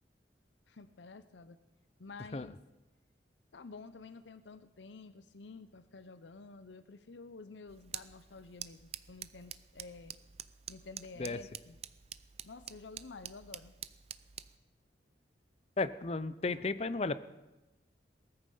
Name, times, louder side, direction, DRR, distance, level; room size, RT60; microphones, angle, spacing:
voice 1, 0.7-1.6 2.0-2.6 3.5-10.2 10.7-11.8 12.4-13.8, left 4 dB, 85° left, 13 dB, 0.7 m, -50 dB
sound 1, 7.7-14.6, right 10 dB, 35° right, 0.5 m, -48 dB
voice 2, 15.8-17.2, left 3 dB, 35° left, 14 dB, 0.6 m, -34 dB
19.0 x 14.0 x 5.5 m, 1.0 s
head